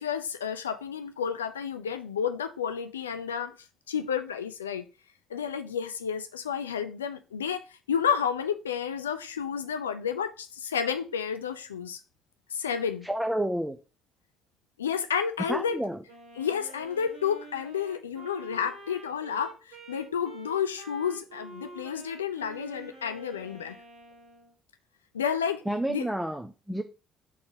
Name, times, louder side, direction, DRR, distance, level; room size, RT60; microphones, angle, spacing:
voice 1, 0.0-3.6 3.9-4.9 5.3-12.0 12.5-13.1 14.8-15.8 16.4-23.8 25.1-25.6 25.9-26.1, left 7 dB, 90° left, 0.5 m, -31 dB
voice 2, 13.0-13.8 15.5-16.0 25.7-26.8, right 1 dB, 5° right, 0.8 m, -30 dB
Wind instrument woodwind instrument, 16.1-24.6, right 2 dB, 70° right, 1.9 m, -48 dB
5.9 x 4.2 x 4.9 m
hypercardioid pair, 50°, 0 cm